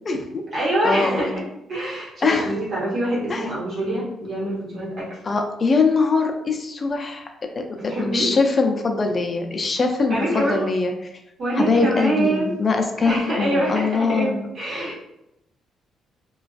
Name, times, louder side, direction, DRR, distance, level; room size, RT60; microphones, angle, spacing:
voice 1, 0.0-0.4 0.8-1.4 2.2-2.5 3.3-3.4 5.2-7.3 7.6-10.9 11.6-14.5, left 4 dB, 35° left, 4 dB, 0.4 m, -22 dB
voice 2, 0.5-1.4 1.7-5.1 7.8-8.3 10.1-10.7 11.4-12.5 13.0-15.0, right 1 dB, 55° right, -6 dB, 1.2 m, -25 dB
2.4 x 2.2 x 2.4 m, 0.85 s
cardioid pair, 90°, 0 cm